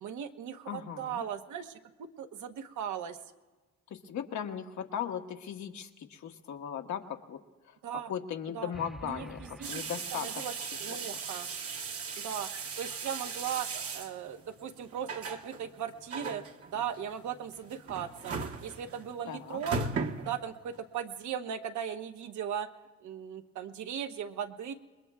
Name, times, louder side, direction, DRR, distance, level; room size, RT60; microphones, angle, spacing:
voice 1, 0.0-3.2 7.8-8.1 8.5-8.7 9.0-9.8 10.2-10.5 10.8-11.5 12.2-12.5 12.8-13.7 13.9-18.4 18.6-19.8 20.2-22.7 23.0-24.7, right 8 dB, 75° right, 7 dB, 1.1 m, -38 dB
voice 2, 0.7-1.2 3.9-7.4 7.7-7.8 8.1-11.0 19.3-19.6, left 8 dB, 70° left, 4 dB, 1.3 m, -38 dB
sound 1, 8.7-10.8, equal, ahead, 0.8 m, -49 dB
sound 2, 9.6-20.8, right 4 dB, 50° right, 1.2 m, -38 dB
28.5 x 21.0 x 2.4 m, 1.2 s
cardioid pair, 90°, 30 cm